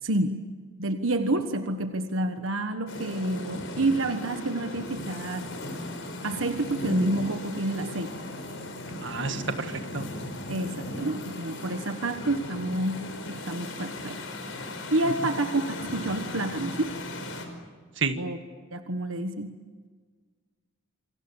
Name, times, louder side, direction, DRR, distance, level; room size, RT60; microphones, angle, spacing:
voice 1, 0.0-0.4 0.8-5.5 6.2-8.1 10.5-14.2 14.9-16.9 18.2-18.4 18.7-19.5, right 2 dB, 75° right, 7 dB, 1.4 m, -29 dB
sound 1, 2.9-17.5, left 1 dB, 70° left, 5.2 m, -37 dB
voice 2, 9.0-10.1 18.0-18.2, right 4 dB, 60° right, 7 dB, 1.7 m, -30 dB
28.0 x 25.0 x 7.2 m, 1.6 s
head